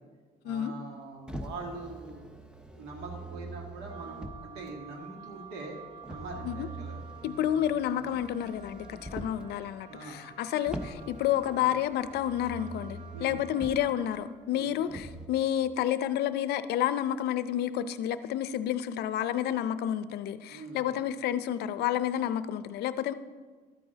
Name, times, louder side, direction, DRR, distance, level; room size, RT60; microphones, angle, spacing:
voice 1, 0.4-2.3 2.8-5.8 6.1-7.0 9.0-9.1 9.9-10.2 13.1-13.4 14.5-14.7 20.5-20.8, right 3 dB, 90° right, 1 dB, 2.0 m, -43 dB
Motor vehicle (road), 1.3-4.7 6.0-9.5 10.7-13.9 14.9-15.3, right 1 dB, 5° right, 0.8 m, -43 dB
Wind instrument woodwind instrument, 3.8-14.4, right 6 dB, 25° right, 2.4 m, -50 dB
voice 2, 7.2-23.1, left 11 dB, 75° left, 13 dB, 0.5 m, -30 dB
13.0 x 8.7 x 3.9 m, 1.5 s
cardioid pair, 110°, 17 cm